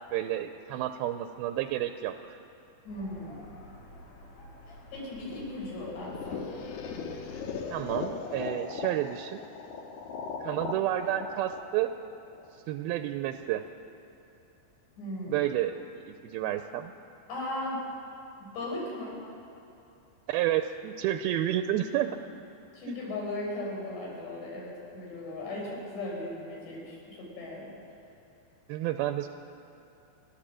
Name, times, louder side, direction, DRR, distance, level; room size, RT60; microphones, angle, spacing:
voice 1, 0.1-2.4 7.7-9.4 10.4-11.9 12.7-13.6 15.3-16.9 20.3-22.2 22.9-23.0 28.7-29.3, right 12 dB, 80° right, 8 dB, 2.3 m, -30 dB
voice 2, 2.8-3.5 4.9-6.4 15.0-15.5 17.3-17.9 18.4-19.2 22.7-27.7, left 1 dB, 85° left, -4 dB, 8.1 m, -37 dB
sound 1, 2.9-8.0, left 2 dB, 50° left, 4.6 m, -50 dB
sound 2, 5.9-12.8, left 5 dB, 65° left, 3.1 m, -38 dB
29.5 x 11.5 x 7.6 m, 3.0 s
omnidirectional pair, 4.8 m